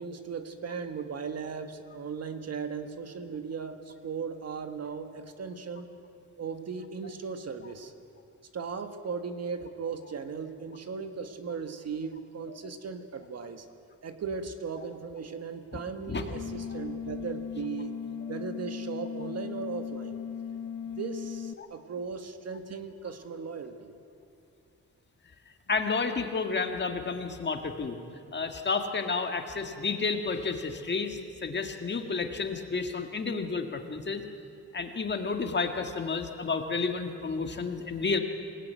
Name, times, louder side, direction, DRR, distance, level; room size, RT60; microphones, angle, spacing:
voice 1, 0.0-5.9 6.4-7.9 8.5-13.7 14.0-18.0 18.3-20.2 20.9-23.9, right 5 dB, 55° right, 7 dB, 1.6 m, -37 dB
sound 1, 16.3-21.5, left 7 dB, 75° left, 1.4 m, -37 dB
voice 2, 25.7-28.0 28.3-34.2 34.7-38.2, left 4 dB, 35° left, 6 dB, 1.7 m, -31 dB
27.0 x 18.0 x 9.4 m, 2.6 s
wide cardioid pair, 170°, 31 cm